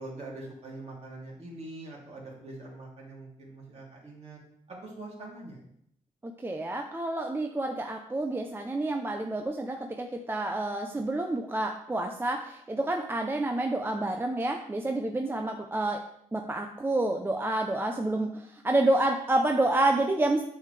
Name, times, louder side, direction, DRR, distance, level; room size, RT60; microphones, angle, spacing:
voice 1, 0.0-4.4 4.7-5.6, right 2 dB, 50° right, -3 dB, 2.6 m, -43 dB
voice 2, 6.2-16.0 16.3-20.4, right 2 dB, 15° right, 3 dB, 0.5 m, -29 dB
8.3 x 6.7 x 3.3 m, 0.73 s
cardioid pair, 105°, 14 cm